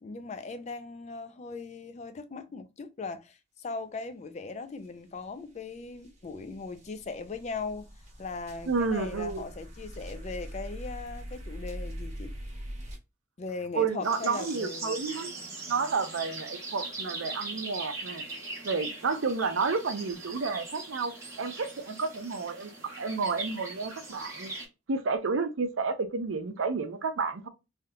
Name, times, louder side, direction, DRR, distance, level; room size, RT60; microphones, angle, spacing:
voice 1, 0.0-7.9 8.2-12.3 13.4-15.0, left 4 dB, 35° left, 0.4 m, -39 dB
sound 1, 4.8-4.9 5.2-13.0, equal, 35° right, 1.3 m, -42 dB
voice 2, 8.7-9.5 13.7-15.3 15.7-18.2 18.6-22.7 23.0-24.5 24.9-27.5, right 4 dB, 80° right, 0.5 m, -31 dB
sound 2, 14.0-24.7, right 3 dB, 15° right, 1.4 m, -41 dB
3.5 x 2.7 x 2.3 m
head